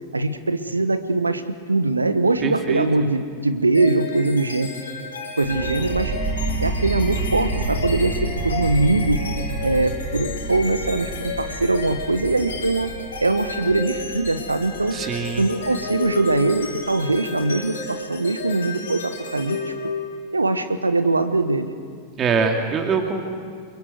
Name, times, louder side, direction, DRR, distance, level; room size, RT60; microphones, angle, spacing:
voice 1, 0.1-1.4 1.7-4.7 5.4-6.1 6.6-9.2 9.6-12.9 13.2-15.0 15.4-19.7 20.3-21.7, right 2 dB, 80° right, 10 dB, 1.4 m, -22 dB
voice 2, 2.4-2.9 14.9-15.4 22.2-23.3, right 5 dB, 25° right, 3 dB, 2.6 m, -23 dB
sound 1, 3.7-20.4, left 4 dB, 65° left, 3.4 m, -33 dB
sound 2, 5.4-16.8, right 3 dB, 55° right, 4.9 m, -30 dB
29.0 x 23.5 x 8.1 m, 2.1 s
figure-of-eight pair, 90°, 0 cm